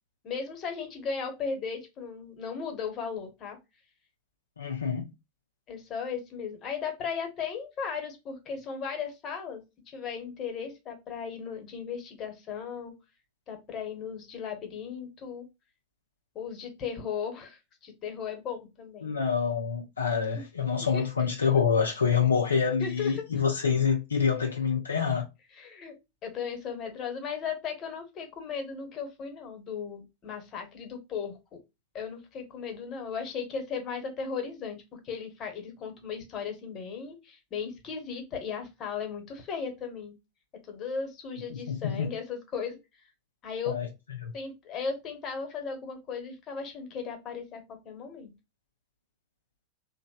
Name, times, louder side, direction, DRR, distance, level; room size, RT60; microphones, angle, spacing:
voice 1, 0.2-3.6 5.7-12.9 13.5-15.5 16.3-19.1 20.3-20.4 20.8-21.1 22.8-23.2 25.5-25.9 26.2-31.4 31.9-40.1 40.7-42.8 43.4-43.8 44.3-48.3, left 6 dB, 35° left, 1.1 m, -36 dB
voice 2, 4.6-5.1 19.0-25.2 41.5-42.1 43.7-43.9 44.2-44.3, left 6 dB, 85° left, 0.5 m, -27 dB
2.9 x 2.1 x 2.3 m
figure-of-eight pair, 90°, 0 cm